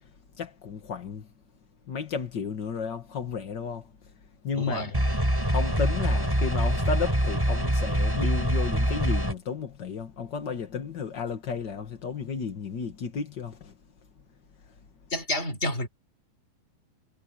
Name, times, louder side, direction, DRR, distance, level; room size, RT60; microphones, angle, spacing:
voice 1, 0.4-1.3 1.9-3.8 4.4-4.9 5.5-13.7, left 6 dB, 70° left, 1.0 m, -33 dB
voice 2, 4.5-4.9 15.1-15.9, left 1 dB, 15° left, 3.4 m, -29 dB
sound 1, 4.9-9.3, equal, 5° right, 5.7 m, -25 dB
omnidirectional pair, 4.5 m